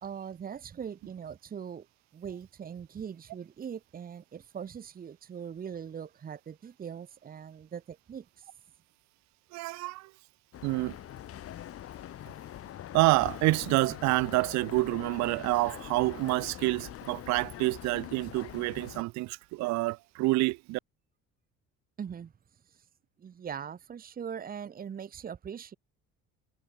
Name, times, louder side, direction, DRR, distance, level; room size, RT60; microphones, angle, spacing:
voice 1, 0.0-1.9 2.1-8.5 22.0-22.9 23.2-25.7, right 7 dB, 30° right, 1.8 m, -41 dB
voice 2, 9.5-10.1 10.6-11.0 12.9-20.8, right 21 dB, 65° right, 0.5 m, -28 dB
sound 1, 10.5-19.0, left 12 dB, 50° left, 4.0 m, -43 dB
cardioid pair, 155°, 30 cm